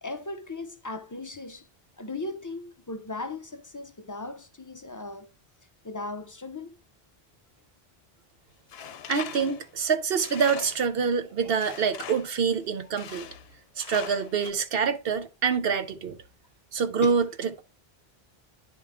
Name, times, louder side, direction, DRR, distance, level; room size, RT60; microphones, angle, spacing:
voice 1, 0.0-1.7 2.0-5.3 5.8-6.8 17.0-17.2, left 2 dB, 30° left, 0.3 m, -37 dB
Tools, 8.7-11.0 11.6-12.4 13.0-13.5 13.8-14.5, left 9 dB, 75° left, 0.8 m, -41 dB
voice 2, 9.1-13.3 13.8-16.2 16.7-17.6, right 6 dB, 70° right, 0.9 m, -26 dB
9.8 x 3.5 x 3.5 m
omnidirectional pair, 1.0 m